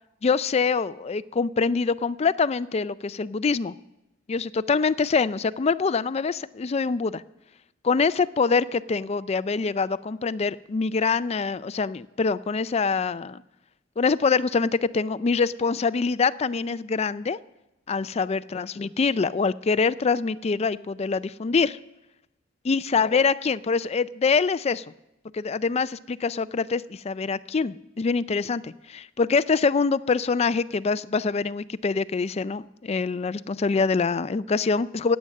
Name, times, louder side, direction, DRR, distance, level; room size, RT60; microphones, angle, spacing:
voice 1, 0.2-3.7 4.3-7.2 7.8-13.4 14.0-17.4 17.9-21.8 22.6-24.8 25.3-35.2, left 4 dB, 35° left, 16 dB, 0.4 m, -24 dB
16.5 x 9.0 x 6.5 m, 0.92 s
head